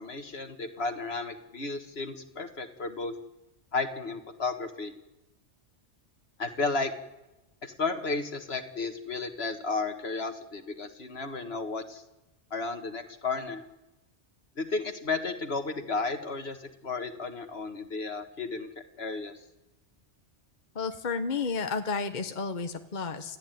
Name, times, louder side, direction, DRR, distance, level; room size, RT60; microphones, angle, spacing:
voice 1, 0.0-3.1 3.7-4.9 6.4-6.9 7.6-12.0 12.5-13.6 14.6-18.7 19.0-19.3, left 3 dB, 60° left, 6 dB, 2.1 m, -33 dB
voice 2, 20.7-23.4, left 4 dB, 40° left, 6 dB, 1.2 m, -32 dB
29.5 x 14.0 x 9.3 m, 0.99 s
omnidirectional pair, 1.2 m